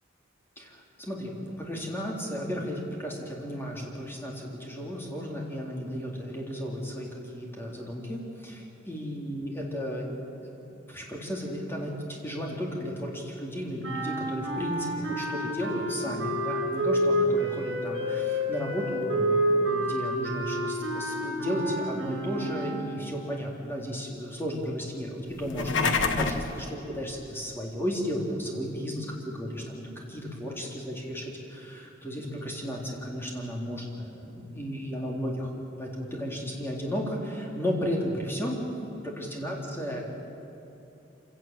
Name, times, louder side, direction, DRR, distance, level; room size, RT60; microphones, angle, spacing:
voice 1, 0.6-10.1 10.4-35.5 35.8-38.6 39.0-40.0, equal, 10° left, -2 dB, 3.8 m, -34 dB
sound 1, 13.8-23.0, equal, 70° right, 5.0 m, -29 dB
sound 2, 25.4-26.5, left 4 dB, 65° left, 1.4 m, -26 dB
26.5 x 17.5 x 7.8 m, 2.8 s
head